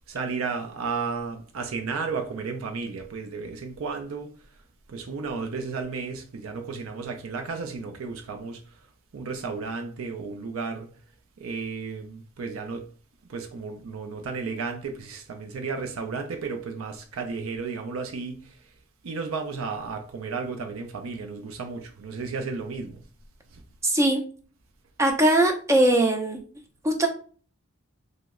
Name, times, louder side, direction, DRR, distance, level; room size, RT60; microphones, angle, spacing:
voice 1, 0.1-4.3 4.9-8.6 9.1-10.9 11.4-12.9 13.3-18.6 19.0-23.0 23.5-23.6, right 4 dB, 80° right, 0.4 m, -33 dB
voice 2, 23.8-24.2 25.0-26.4 26.8-27.1, right 1 dB, 15° right, 0.4 m, -20 dB
3.0 x 2.0 x 3.5 m
head